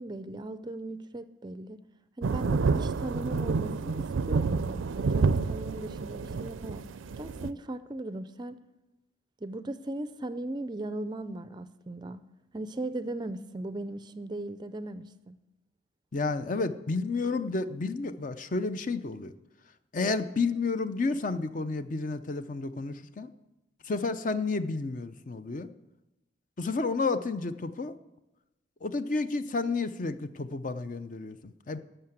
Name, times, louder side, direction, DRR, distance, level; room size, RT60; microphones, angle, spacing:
voice 1, 0.0-1.8 2.2-6.8 7.2-8.6 9.4-12.2 12.5-15.4, right 1 dB, 20° right, 0.4 m, -38 dB
sound 1, 2.2-7.5, right 4 dB, 85° right, 0.4 m, -29 dB
voice 2, 16.1-19.3 19.9-23.3 23.8-25.7 26.6-27.9 28.8-31.8, left 3 dB, 40° left, 0.5 m, -31 dB
11.5 x 6.7 x 7.8 m
head